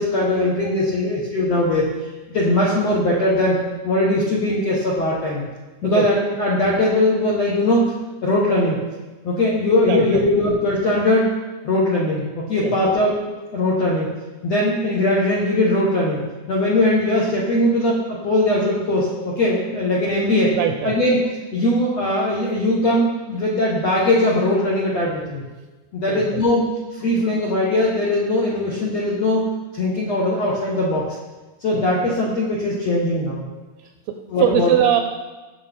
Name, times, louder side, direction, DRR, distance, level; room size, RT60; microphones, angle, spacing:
voice 1, 0.0-1.9 2.3-3.6 3.8-5.4 5.8-7.9 8.2-8.8 9.2-11.3 11.6-14.1 14.4-16.2 16.5-20.5 20.8-21.2 21.5-25.4 25.9-29.4 29.7-31.1 31.6-33.4 34.3-34.7, left 1 dB, 65° left, -5 dB, 1.6 m, -20 dB
voice 2, 9.9-10.2 12.6-12.7 20.5-20.9 26.1-26.4 31.7-31.8 34.1-35.0, right 10 dB, 80° right, 6 dB, 2.3 m, -21 dB
18.5 x 6.5 x 3.6 m, 1.2 s
omnidirectional pair, 5.0 m